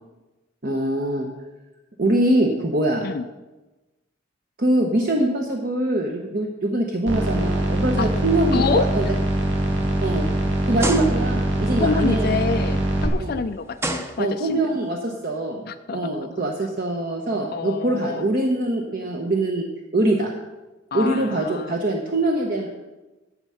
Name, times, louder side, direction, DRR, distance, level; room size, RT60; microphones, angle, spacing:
voice 1, 0.6-1.3 2.0-3.1 4.6-9.1 10.0-10.3 10.7-12.3 13.2-13.4 14.2-15.6 15.9-19.7 19.9-20.3 20.9-22.8, right 1 dB, 50° right, 1 dB, 0.9 m, -23 dB
sound 1, 7.1-13.1, right 1 dB, 70° right, 1.9 m, -23 dB
sound 2, 7.6-8.0 8.5-8.6 9.3-9.4 10.8-11.5 13.0-13.1 13.8-14.7, right 1 dB, 15° right, 0.7 m, -29 dB
voice 2, 8.5-8.9 11.8-14.6 15.7-16.1 17.5-18.3 20.9-21.8, left 4 dB, 50° left, 8 dB, 0.4 m, -27 dB
12.0 x 7.4 x 5.7 m, 1.1 s
head